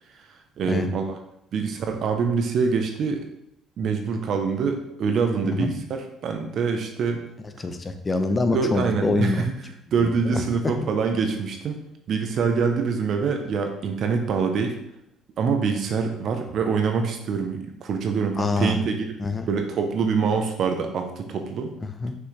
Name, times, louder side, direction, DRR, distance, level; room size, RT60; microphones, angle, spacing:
voice 1, 0.6-1.2 1.5-3.3 3.8-7.2 8.5-9.5 9.9-11.8 12.1-14.8 15.4-19.1 19.5-21.7, right 5 dB, 60° right, 5 dB, 1.0 m, -25 dB
voice 2, 7.6-9.4 10.0-10.4 18.4-18.8 19.2-19.5 21.8-22.1, left 3 dB, 30° left, 8 dB, 0.8 m, -25 dB
6.4 x 5.6 x 3.4 m, 0.78 s
supercardioid pair, 85°, 0 cm